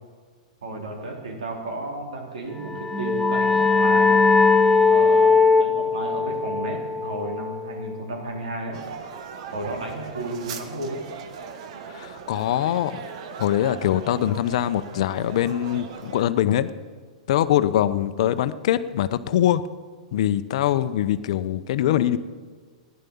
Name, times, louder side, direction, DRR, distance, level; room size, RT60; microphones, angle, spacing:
voice 1, 0.6-4.2 4.8-8.8 9.5-11.0, right 2 dB, 85° right, 1 dB, 3.5 m, -33 dB
sound 1, 2.6-8.0, left 4 dB, 5° left, 0.7 m, -20 dB
sound 2, 8.7-16.3, right 6 dB, 60° right, 1.4 m, -39 dB
voice 2, 11.9-13.0 13.4-16.7 17.3-19.6 20.1-22.2, left 11 dB, 65° left, 13 dB, 0.7 m, -23 dB
15.0 x 10.5 x 7.1 m, 1.5 s
hypercardioid pair, 120°, 4 cm